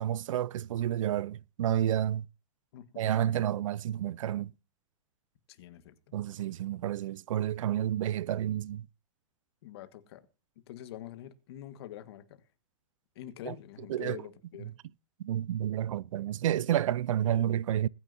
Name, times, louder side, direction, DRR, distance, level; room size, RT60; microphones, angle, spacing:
voice 1, 0.0-2.3 3.0-4.5 6.1-8.9 13.4-13.5 13.9-14.2 15.2-17.9, right 11 dB, 70° right, 0.5 m, -30 dB
voice 2, 2.7-3.3 5.5-5.9 9.6-10.2 10.7-12.4 13.1-14.7, left 12 dB, 50° left, 1.5 m, -45 dB
21.0 x 9.6 x 2.7 m
supercardioid pair, 170°, 17 cm